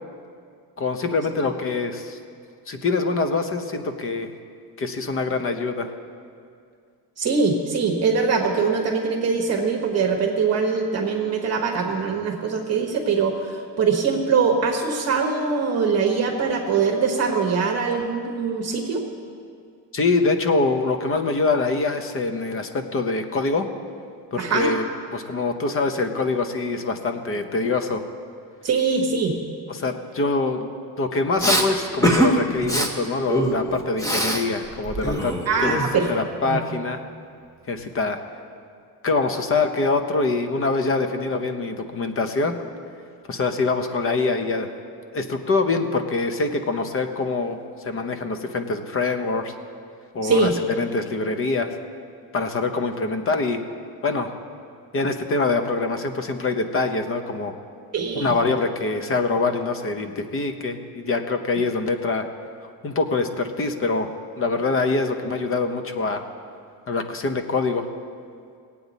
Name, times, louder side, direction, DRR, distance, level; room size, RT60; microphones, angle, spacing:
voice 1, 0.8-2.2 2.7-4.3 4.8-5.9 19.9-23.7 24.3-24.8 25.1-28.0 29.7-30.7 31.0-35.4 35.6-35.8 36.1-37.0 37.7-38.2 39.0-42.6 43.3-44.7 45.1-47.6 47.8-49.5 50.1-50.5 50.8-51.7 52.3-53.6 54.0-54.3 54.9-57.5 58.1-62.3 62.8-64.1 64.4-66.2 66.9-67.9, left 3 dB, 35° left, 7 dB, 0.8 m, -24 dB
voice 2, 7.2-19.0 24.4-24.7 28.6-29.3 35.5-36.1 36.4-36.6 50.2-50.5 57.9-58.3, right 5 dB, 40° right, 1 dB, 1.2 m, -22 dB
Respiratory sounds, 31.4-31.7 32.0-32.3 32.6-32.9 33.3-34.4 34.7-36.1, equal, 10° left, 0.9 m, -22 dB
19.5 x 8.5 x 4.0 m, 2.3 s
cardioid pair, 165°, 39 cm